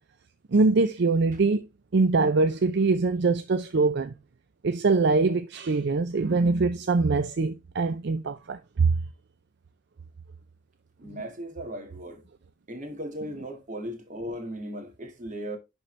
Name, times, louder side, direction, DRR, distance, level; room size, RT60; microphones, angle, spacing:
voice 1, 0.5-1.6 1.9-4.1 4.6-9.0 11.1-11.2, right 3 dB, 60° right, 0.5 m, -23 dB
voice 2, 11.0-12.2 12.7-15.6, equal, 40° right, 2.0 m, -37 dB
11.0 x 4.3 x 3.2 m
head